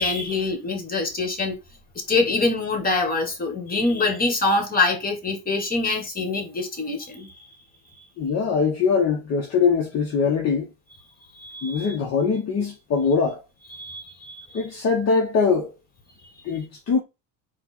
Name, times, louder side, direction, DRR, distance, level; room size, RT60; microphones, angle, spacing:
voice 1, 0.0-1.6 2.1-7.5 11.4-12.0 13.7-14.6, left 3 dB, 20° left, 1.8 m, -25 dB
voice 2, 8.2-10.7 11.6-13.4 14.5-15.7 16.4-17.0, left 5 dB, 40° left, 1.1 m, -22 dB
4.4 x 2.6 x 4.2 m
supercardioid pair, 100°, 40 cm